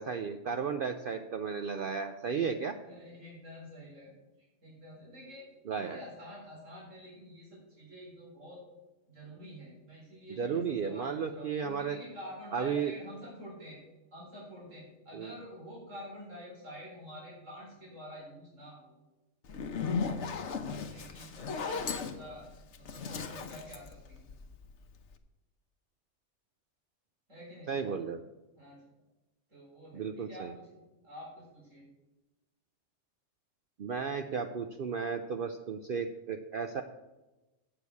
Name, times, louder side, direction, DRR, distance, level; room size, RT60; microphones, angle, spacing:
voice 1, 0.0-2.8 5.7-6.0 10.4-12.0 12.5-12.9 15.1-15.3 27.7-28.2 29.9-30.5 33.8-36.8, right 6 dB, 55° right, 7 dB, 0.7 m, -34 dB
voice 2, 2.8-8.6 9.1-13.8 14.1-18.9 19.5-22.5 22.8-24.2 27.3-27.9 28.6-28.8 29.5-31.9, equal, 85° right, -5 dB, 4.6 m, -48 dB
Zipper (clothing), 19.4-24.7, left 5 dB, 70° left, 1.2 m, -36 dB
8.3 x 7.0 x 8.4 m, 1.1 s
omnidirectional pair, 1.3 m